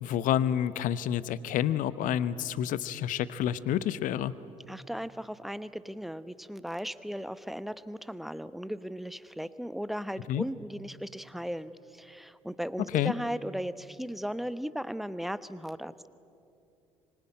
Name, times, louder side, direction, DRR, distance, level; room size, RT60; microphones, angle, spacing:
voice 1, 0.0-4.3 10.3-10.4 12.9-13.1, left 10 dB, 55° left, 17 dB, 0.9 m, -29 dB
voice 2, 4.7-16.1, equal, ahead, 15 dB, 1.0 m, -37 dB
25.0 x 21.0 x 9.6 m, 2.7 s
figure-of-eight pair, 55°, 17 cm